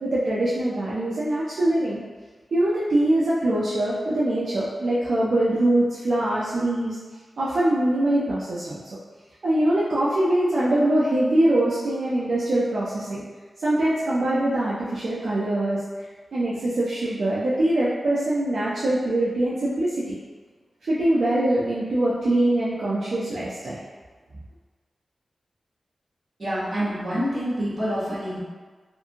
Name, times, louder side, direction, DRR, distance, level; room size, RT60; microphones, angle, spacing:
voice 1, 0.0-2.0 2.5-7.0 7.4-8.8 9.4-13.2 13.6-20.2 20.9-23.8, right 1 dB, 70° right, -8 dB, 0.4 m, -23 dB
voice 2, 26.4-28.4, equal, 45° right, -9 dB, 1.2 m, -27 dB
2.5 x 2.5 x 2.7 m, 1.4 s
wide cardioid pair, 125°, 0 cm